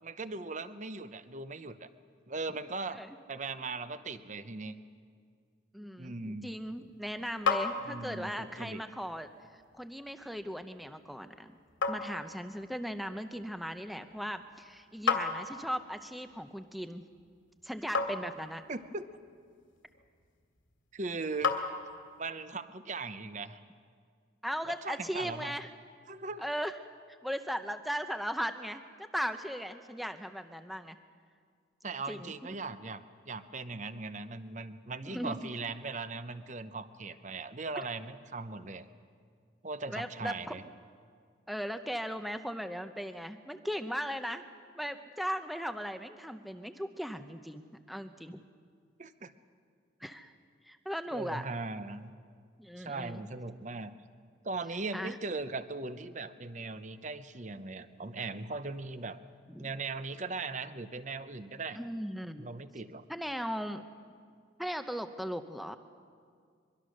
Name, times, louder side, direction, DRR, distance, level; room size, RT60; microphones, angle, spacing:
voice 1, 0.0-1.9 2.3-3.0 3.3-4.8 6.0-6.5 7.8-8.8 18.7-19.1 20.9-21.5 22.2-23.6 24.8-25.6 26.1-26.4 31.8-38.9 39.6-40.6 49.0-49.3 51.1-52.1 52.8-54.0 54.4-59.2 59.6-61.8 62.4-63.1, right 3 dB, 40° right, 12 dB, 0.8 m, -39 dB
voice 2, 5.7-9.3 9.7-11.5 11.9-17.0 17.6-18.6 24.4-25.7 26.4-26.8 27.2-31.0 32.1-32.3 35.0-35.4 39.9-40.5 41.5-44.4 44.8-48.4 50.0-50.3 50.7-51.5 52.6-53.3 54.9-55.2 59.5-59.7 61.7-62.5 63.1-63.8 64.6-65.8, equal, ahead, 8 dB, 0.7 m, -38 dB
sound 1, 6.5-22.3, left 5 dB, 85° left, 2.5 m, -38 dB
23.5 x 23.0 x 6.5 m, 2.1 s
head